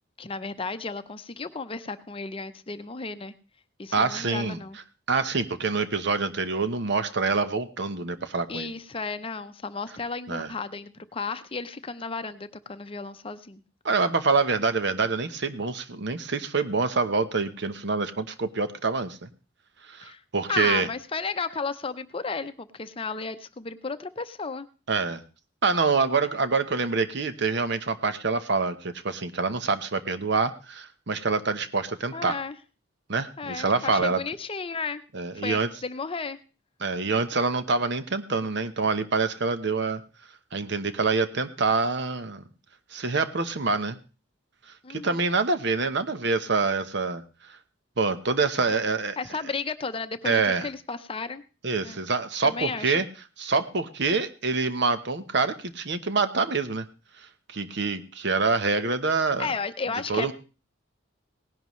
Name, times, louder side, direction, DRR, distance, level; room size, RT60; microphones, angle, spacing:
voice 1, 0.2-3.3 3.8-4.8 8.5-13.6 20.0-20.2 20.5-24.7 32.1-32.6 33.4-35.0 35.3-36.4 44.8-45.3 49.2-51.4 51.8-52.0 52.4-53.0 59.4-60.3, left 4 dB, 30° left, 11 dB, 0.7 m, -33 dB
voice 2, 3.9-4.6 5.1-8.7 10.3-10.5 13.8-19.3 19.8-20.9 24.9-25.2 25.6-32.4 33.1-34.2 35.1-35.7 36.8-40.0 40.5-42.4 42.9-44.0 44.9-47.2 47.5-47.6 48.0-49.2 50.2-50.7 51.6-53.0 53.4-56.9 57.2-59.5 60.1-60.3, right 4 dB, 60° right, 11 dB, 1.0 m, -26 dB
18.0 x 11.0 x 3.1 m, 0.33 s
head